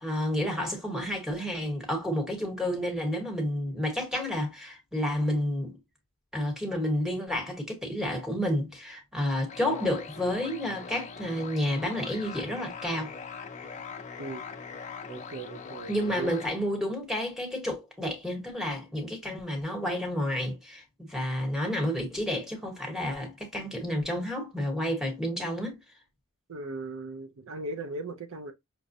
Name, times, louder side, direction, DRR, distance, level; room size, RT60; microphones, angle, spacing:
voice 1, 0.0-5.7 6.3-13.1 15.9-25.8, left 1 dB, ahead, 1.1 m, -30 dB
sound 1, 9.5-16.5, left 5 dB, 30° left, 0.5 m, -42 dB
voice 2, 15.1-16.4 26.5-28.5, right 2 dB, 60° right, 0.5 m, -38 dB
5.9 x 2.1 x 2.6 m
head